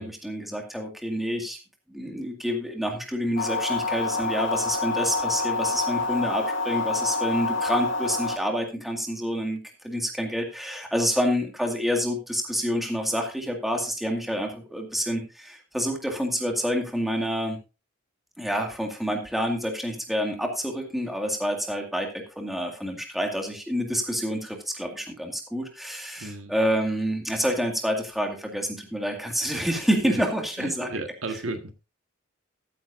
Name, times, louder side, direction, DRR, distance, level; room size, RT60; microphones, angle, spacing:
voice 1, 0.0-1.6 1.9-9.6 9.8-17.6 18.4-30.9, equal, ahead, 2.1 m, -28 dB
sound 1, 3.4-8.4, left 3 dB, 65° left, 2.2 m, -27 dB
voice 2, 26.2-26.5 30.0-30.2 30.6-31.7, right 2 dB, 75° right, 1.7 m, -34 dB
14.0 x 9.5 x 2.6 m
head